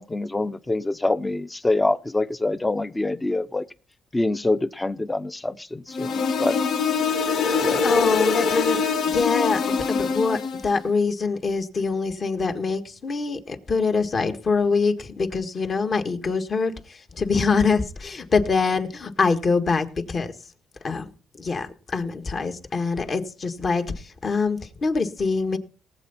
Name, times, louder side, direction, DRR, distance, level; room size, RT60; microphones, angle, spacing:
voice 1, 0.0-3.6 4.1-6.6 7.6-7.8, left 2 dB, 15° left, 0.7 m, -25 dB
sound 1, 5.9-10.7, left 5 dB, 70° left, 1.8 m, -23 dB
voice 2, 7.8-8.8 9.1-9.6 9.9-20.3 20.8-21.1 21.4-23.8 24.2-25.6, left 4 dB, 45° left, 1.7 m, -24 dB
19.0 x 8.0 x 4.2 m
cardioid pair, 90°, 0 cm